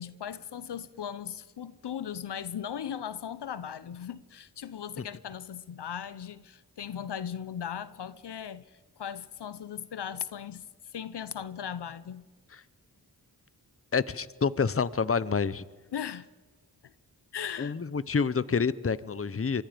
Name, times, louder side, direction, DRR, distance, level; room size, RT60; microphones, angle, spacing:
voice 1, 0.0-12.3 15.9-16.3 16.8-16.9 17.3-17.7, left 8 dB, 75° left, 0.8 m, -38 dB
voice 2, 13.9-15.6 17.6-19.6, left 5 dB, 35° left, 0.9 m, -28 dB
26.0 x 23.5 x 5.2 m
cardioid pair, 40°, 41 cm